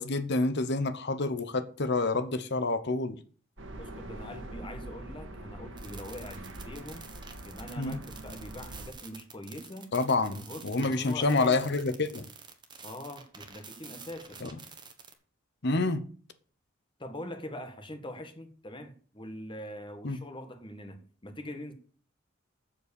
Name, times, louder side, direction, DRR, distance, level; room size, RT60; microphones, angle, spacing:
voice 1, 0.0-3.2 7.8-8.0 9.9-12.2 14.4-14.5 15.6-16.0 20.0-20.2, left 3 dB, 60° left, 1.0 m, -28 dB
sound 1, 3.6-8.9, right 1 dB, 70° right, 1.7 m, -44 dB
voice 2, 3.8-7.1 7.4-9.9 10.3-11.6 12.8-14.5 17.0-21.7, left 1 dB, 25° left, 1.4 m, -43 dB
sound 2, 5.8-15.1, right 5 dB, 25° right, 1.4 m, -49 dB
7.7 x 6.9 x 6.9 m
head